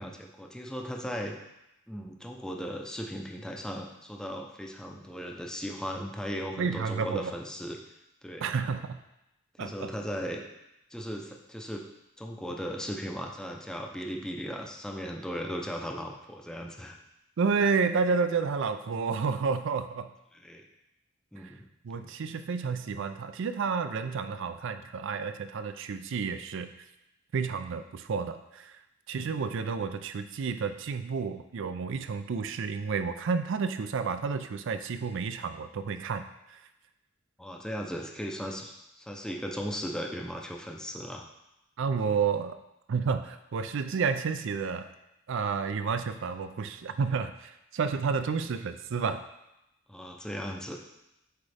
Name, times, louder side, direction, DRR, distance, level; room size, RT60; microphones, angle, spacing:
voice 1, 0.0-1.4 1.9-7.8 8.2-8.5 9.6-10.4 10.9-11.8 12.2-17.0 20.3-20.6 21.3-21.6 21.9-22.1 37.4-41.3 49.9-50.8, equal, 5° left, 1 dB, 0.5 m, -37 dB
voice 2, 6.6-7.3 8.4-9.0 9.6-9.9 17.4-20.1 21.4-21.5 21.8-26.7 27.3-28.7 29.1-36.6 41.8-42.6 42.9-44.9 45.3-49.2, right 5 dB, 65° right, 9 dB, 0.4 m, -30 dB
8.1 x 3.6 x 3.4 m, 0.89 s
head